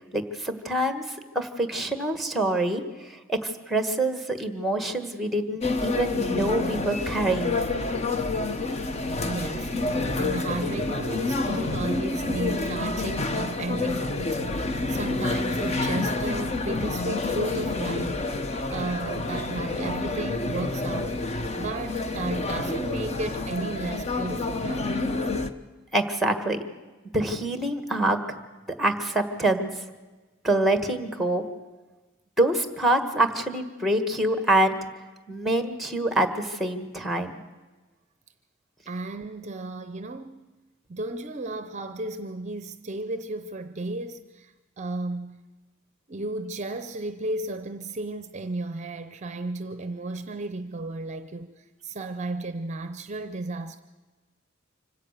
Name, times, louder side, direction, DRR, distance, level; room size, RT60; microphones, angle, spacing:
voice 1, 0.0-7.6 25.9-26.6 27.1-28.4 28.8-29.7 30.4-31.4 32.4-34.8 35.3-37.3, right 1 dB, ahead, 1.4 m, -26 dB
sound 1, 5.6-25.5, left 3 dB, 35° left, 0.9 m, -28 dB
voice 2, 9.2-18.3 18.7-25.0 38.9-40.4 40.9-45.4 46.1-53.8, right 2 dB, 35° right, 0.6 m, -34 dB
25.5 x 16.5 x 6.6 m
head